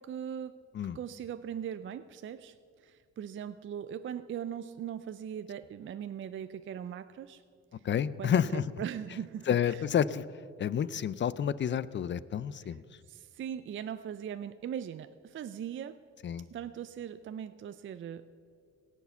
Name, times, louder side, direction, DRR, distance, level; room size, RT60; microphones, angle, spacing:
voice 1, 0.0-0.6 0.9-7.4 7.8-7.9 8.2-9.9 12.6-12.8 13.1-16.0 16.5-18.3, right 9 dB, 40° right, 11 dB, 0.4 m, -40 dB
voice 2, 7.8-8.6 9.5-10.3 10.6-12.8 16.2-16.5, left 8 dB, 40° left, 18 dB, 0.5 m, -29 dB
17.5 x 7.3 x 6.9 m, 2.2 s
cardioid pair, 90°, 30 cm